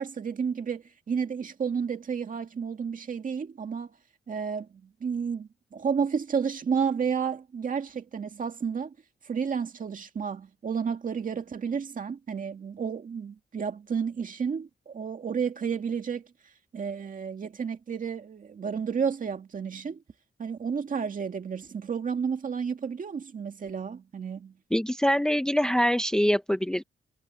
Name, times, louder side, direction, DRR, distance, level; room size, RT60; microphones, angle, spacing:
voice 1, 0.0-3.9 4.3-8.9 9.2-16.3 16.7-20.0 20.4-24.6, right 6 dB, 45° right, 2.1 m, -31 dB
voice 2, 24.7-26.8, equal, 5° left, 0.6 m, -24 dB
wide cardioid pair, 175°, 19 cm